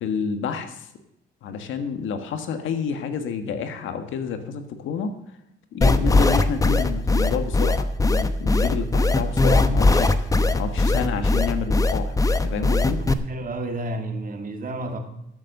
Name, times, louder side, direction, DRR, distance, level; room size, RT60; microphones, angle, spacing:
voice 1, 0.0-0.9 1.4-5.1 5.7-10.1 10.5-12.2 12.4-13.0, left 6 dB, 80° left, 8 dB, 1.5 m, -29 dB
sound 1, 5.8-13.1, left 2 dB, 15° left, 0.8 m, -19 dB
voice 2, 13.0-15.0, right 2 dB, 45° right, 5 dB, 2.3 m, -31 dB
13.5 x 7.6 x 6.6 m, 0.79 s
cardioid pair, 90°, 20 cm